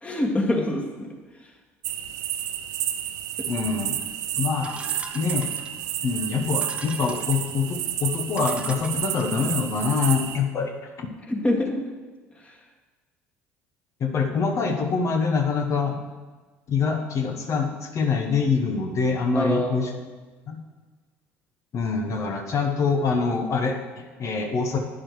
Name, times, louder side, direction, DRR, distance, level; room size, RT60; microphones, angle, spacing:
voice 1, 0.0-1.1 11.3-11.9 12.4-12.6 19.3-19.8, left 1 dB, 20° left, 0 dB, 2.1 m, -25 dB
sound 1, 1.8-10.4, right 11 dB, 65° right, 0.7 m, -30 dB
voice 2, 3.5-4.0 4.4-4.7 5.1-5.5 6.0-11.1 14.0-16.0 16.7-19.9 20.5-20.6 21.7-24.8, left 5 dB, 45° left, 4 dB, 1.2 m, -25 dB
sound 2, 4.6-5.9 6.5-7.5 8.0-8.1 8.4-9.6, right 2 dB, 15° right, 0.9 m, -43 dB
11.5 x 9.6 x 3.2 m, 1.3 s
hypercardioid pair, 65°, 7 cm